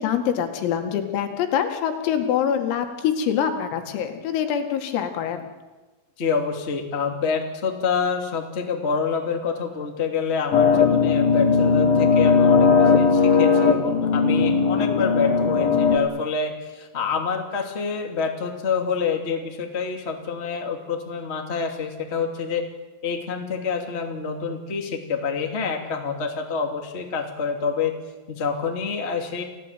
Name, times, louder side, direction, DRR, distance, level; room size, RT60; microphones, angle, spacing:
voice 1, 0.0-5.4, left 8 dB, 80° left, 6 dB, 4.8 m, -25 dB
voice 2, 6.2-22.6 23.0-27.9 28.3-29.4, left 5 dB, 20° left, 3 dB, 1.6 m, -27 dB
sound 1, 10.5-16.0, left 5 dB, 55° left, 3.1 m, -18 dB
29.0 x 16.5 x 9.1 m, 1.2 s
omnidirectional pair, 6.0 m